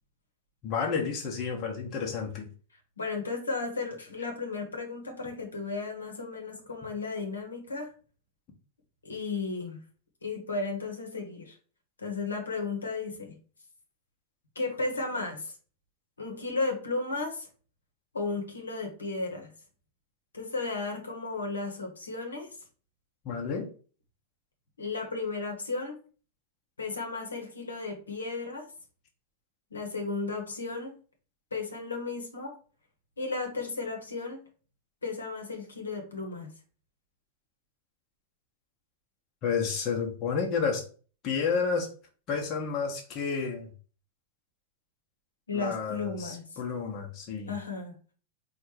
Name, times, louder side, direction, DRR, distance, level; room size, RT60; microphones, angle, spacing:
voice 1, 0.6-2.5 23.2-23.7 39.4-40.9 41.2-41.9 42.3-43.7 45.5-47.5, left 5 dB, 35° left, 0 dB, 1.1 m, -30 dB
voice 2, 3.0-7.9 9.0-9.8 10.2-11.6 12.0-13.4 14.5-15.5 16.2-17.5 18.1-19.5 20.3-22.5 24.8-26.0 26.8-28.7 29.7-30.9 31.5-32.5 33.2-34.4 35.0-36.5 45.5-46.6 47.5-47.9, left 3 dB, 75° left, 2 dB, 1.1 m, -34 dB
4.5 x 2.5 x 4.6 m, 0.39 s
figure-of-eight pair, 90°, 0 cm